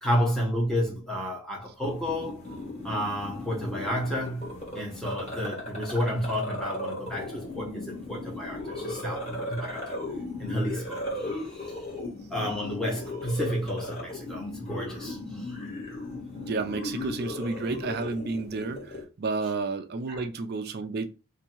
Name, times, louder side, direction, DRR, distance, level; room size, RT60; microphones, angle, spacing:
voice 1, 0.0-2.5 2.8-10.0 10.4-11.8 12.3-15.6 20.1-20.2, equal, 5° left, 1.0 m, -31 dB
sound 1, 1.8-19.0, left 1 dB, 30° left, 1.7 m, -37 dB
voice 2, 16.4-21.1, right 3 dB, 50° right, 0.4 m, -31 dB
2.8 x 2.7 x 4.3 m
head